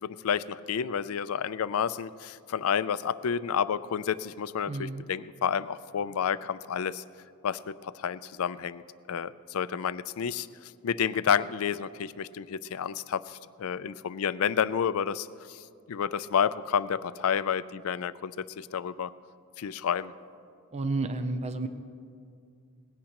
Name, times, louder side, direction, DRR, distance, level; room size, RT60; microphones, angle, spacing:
voice 1, 0.0-7.0 7.4-8.8 9.1-19.1 19.6-20.1, left 7 dB, 70° left, 16 dB, 0.4 m, -30 dB
voice 2, 4.7-5.0 20.7-21.7, right 2 dB, 30° right, 9 dB, 0.5 m, -31 dB
19.5 x 16.5 x 3.0 m, 2.4 s
head